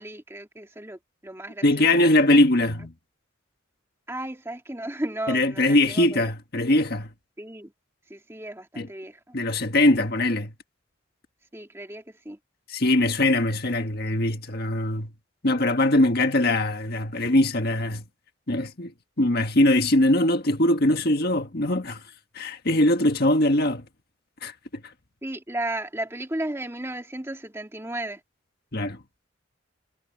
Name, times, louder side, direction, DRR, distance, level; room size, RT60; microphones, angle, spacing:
voice 1, 0.0-2.1 4.1-6.2 7.4-7.7 8.1-9.3 11.5-12.4 25.2-28.2, right 1 dB, 15° right, 2.1 m, -34 dB
voice 2, 1.6-2.9 5.3-7.1 8.7-8.9 9.3-10.5 12.7-15.1 15.4-18.0 18.5-18.9 19.2-22.0 22.3-23.9 24.4-24.8 28.7-29.0, left 1 dB, 50° left, 1.7 m, -21 dB
head